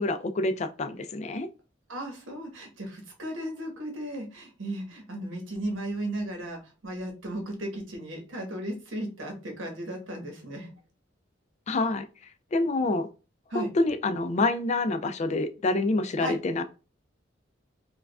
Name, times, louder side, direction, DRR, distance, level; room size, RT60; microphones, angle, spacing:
voice 1, 0.0-1.5 11.7-12.0 12.5-13.1 13.5-16.6, left 2 dB, 35° left, 0.3 m, -27 dB
voice 2, 1.9-10.7 13.5-13.7 16.2-16.4, right 1 dB, 90° right, 1.2 m, -35 dB
4.6 x 2.3 x 2.3 m
head